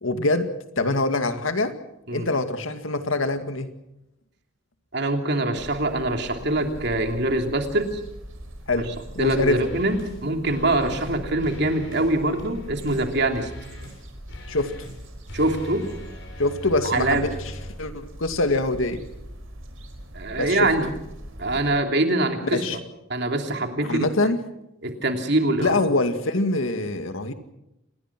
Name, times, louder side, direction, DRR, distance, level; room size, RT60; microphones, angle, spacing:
voice 1, 0.0-1.8 2.1-3.7 8.7-9.7 12.9-13.1 14.5-14.9 16.4-19.0 20.4-20.7 22.4-22.8 23.8-24.4 25.6-27.3, left 2 dB, 80° left, 8 dB, 2.1 m, -24 dB
voice 2, 4.9-7.9 9.2-13.5 15.3-15.8 16.8-17.3 20.1-20.9 21.4-22.6 23.1-24.1 24.8-25.7, right 2 dB, 55° right, 5 dB, 3.0 m, -24 dB
sound 1, 5.6-21.7, right 1 dB, 75° right, 4.8 m, -41 dB
sound 2, 9.5-10.2 10.5-11.2 11.4-17.7, left 1 dB, 60° left, 6.5 m, -41 dB
27.0 x 20.0 x 6.1 m, 0.86 s
head